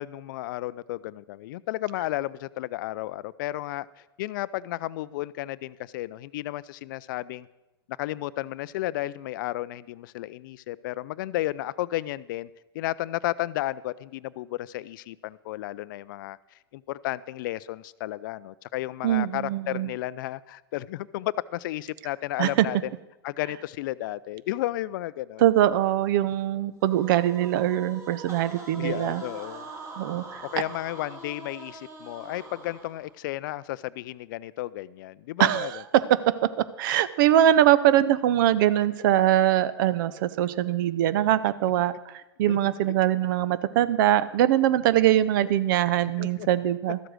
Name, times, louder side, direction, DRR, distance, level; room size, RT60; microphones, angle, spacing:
voice 1, 0.0-3.9 4.2-7.5 8.0-12.5 12.7-16.4 16.7-22.9 23.2-25.4 28.8-29.7 30.5-35.8 42.5-42.6 46.2-46.5, left 16 dB, 55° left, 0.4 m, -33 dB
voice 2, 19.0-19.9 22.4-22.5 25.4-29.2 30.0-30.4 35.4-35.7 35.9-36.2 36.8-41.9 42.4-47.0, right 12 dB, 55° right, 0.6 m, -22 dB
sound 1, 26.8-33.1, right 2 dB, 20° right, 2.3 m, -43 dB
12.5 x 7.8 x 6.2 m
hypercardioid pair, 105°, 13 cm